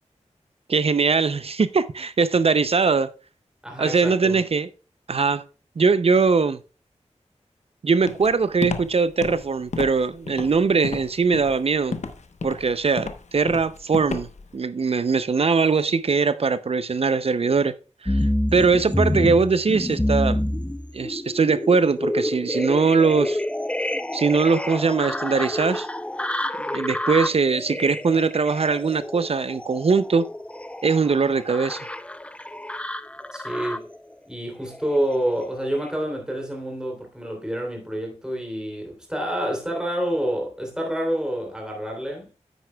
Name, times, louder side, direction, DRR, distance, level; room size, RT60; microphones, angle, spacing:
voice 1, 0.7-3.1 3.8-4.7 5.1-5.4 5.8-6.6 7.8-11.9 12.4-14.3 14.5-17.7 18.0-20.4 20.9-23.4 24.1-25.9 26.7-30.3 30.8-31.9, right 4 dB, 55° right, 0.5 m, -21 dB
voice 2, 3.6-4.4 33.3-33.9 34.3-42.3, right 1 dB, 5° right, 3.1 m, -28 dB
Walk footsteps, 8.1-14.5, left 4 dB, 70° left, 0.9 m, -32 dB
sound 1, 18.1-34.0 34.6-35.3 35.8-35.9, left 1 dB, 10° left, 0.5 m, -28 dB
9.3 x 9.3 x 2.2 m
wide cardioid pair, 75°, 12 cm